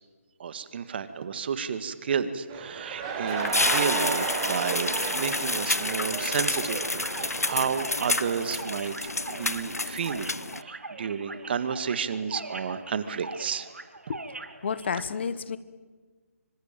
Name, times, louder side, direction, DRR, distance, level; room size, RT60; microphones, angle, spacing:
voice 1, 0.4-9.0 9.3-13.7, right 6 dB, 40° right, 12 dB, 1.8 m, -31 dB
sound 1, 2.5-8.6, right 5 dB, 25° right, 3.7 m, -34 dB
sound 2, 3.3-10.6, left 2 dB, 90° left, 0.9 m, -29 dB
sound 3, 6.5-15.0, right 3 dB, 75° right, 2.6 m, -42 dB
voice 2, 14.6-15.6, left 6 dB, 50° left, 15 dB, 1.3 m, -30 dB
26.5 x 24.5 x 9.0 m, 1.4 s
figure-of-eight pair, 145°, 8 cm